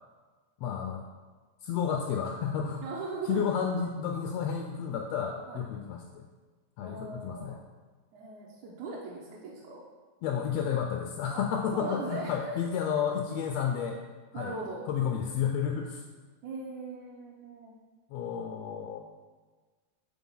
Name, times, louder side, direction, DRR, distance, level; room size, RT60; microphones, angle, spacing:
voice 1, 0.6-1.0 1.6-2.9 3.3-6.2 6.8-7.6 10.2-14.0 14.3-14.5 14.9-16.0 18.1-19.0, left 7 dB, 90° left, 2 dB, 1.4 m, -31 dB
voice 2, 2.8-3.4 5.5-5.6 6.8-7.6 8.1-9.8 11.7-12.6 14.3-14.8 16.4-17.7, right 3 dB, 80° right, -5 dB, 2.2 m, -39 dB
6.0 x 3.9 x 5.4 m, 1.3 s
omnidirectional pair, 3.4 m